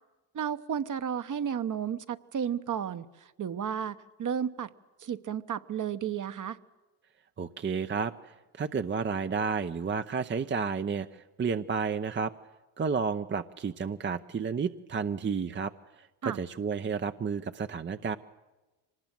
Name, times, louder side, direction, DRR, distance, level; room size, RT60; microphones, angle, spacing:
voice 1, 0.3-4.7 5.0-6.6 16.2-16.4, right 8 dB, 40° right, 11 dB, 1.1 m, -33 dB
voice 2, 7.4-12.3 12.8-15.7 16.0-18.2, right 5 dB, 25° right, 9 dB, 0.7 m, -31 dB
24.5 x 19.5 x 7.6 m, 1.1 s
supercardioid pair, 75°, 46 cm